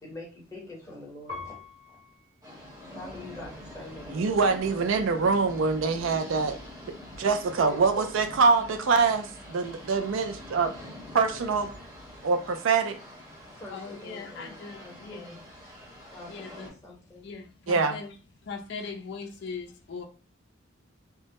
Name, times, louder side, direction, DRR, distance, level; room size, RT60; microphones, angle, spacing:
voice 1, 0.0-1.5 2.9-4.8 7.2-8.1 10.8-10.9 13.5-15.4 16.1-17.3, left 2 dB, 15° left, 0.8 m, -45 dB
Piano, 1.3-4.0 4.7-5.4, left 4 dB, 35° right, 1.1 m, -47 dB
sound 1, 2.4-16.7, left 1 dB, 15° right, 1.0 m, -45 dB
voice 2, 4.1-6.6 7.1-10.7 11.1-11.7 12.2-13.0 17.7-18.0, right 4 dB, 70° right, 0.4 m, -24 dB
voice 3, 13.7-15.4 16.3-16.7 17.2-18.2 18.4-20.0, left 4 dB, 55° left, 0.4 m, -40 dB
2.1 x 2.1 x 2.8 m
head